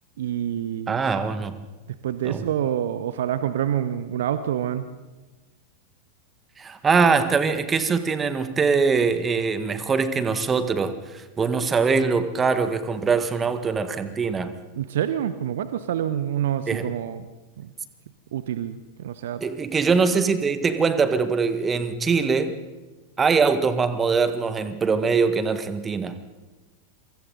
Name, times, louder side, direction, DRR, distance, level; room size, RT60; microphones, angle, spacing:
voice 1, 0.2-1.0 2.0-4.9 14.7-17.3 17.6-17.7 18.3-19.4, right 10 dB, 60° right, 12 dB, 1.0 m, -27 dB
voice 2, 0.9-1.5 2.2-2.4 6.6-14.5 16.7-16.8 19.4-22.5 23.2-26.1, right 5 dB, 20° right, 10 dB, 1.7 m, -22 dB
27.5 x 24.5 x 4.0 m, 1.2 s
figure-of-eight pair, 90°, 0 cm